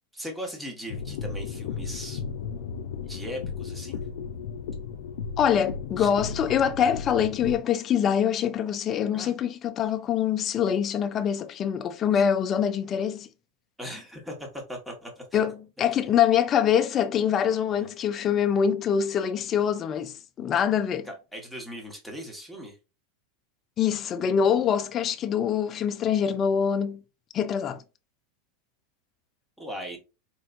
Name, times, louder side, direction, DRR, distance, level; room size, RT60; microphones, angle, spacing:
voice 1, 0.1-2.2 3.0-4.0 6.0-6.1 9.1-9.3 12.1-12.2 13.8-15.4 15.8-16.2 17.6-17.9 21.0-22.8 29.6-30.0, equal, 5° right, 1.2 m, -39 dB
sound 1, 0.9-7.6, left 6 dB, 80° left, 0.6 m, -35 dB
voice 2, 5.4-13.3 15.3-21.1 23.8-27.0 27.3-27.8, left 8 dB, 30° left, 0.5 m, -24 dB
4.3 x 3.1 x 2.5 m
supercardioid pair, 140°, 0 cm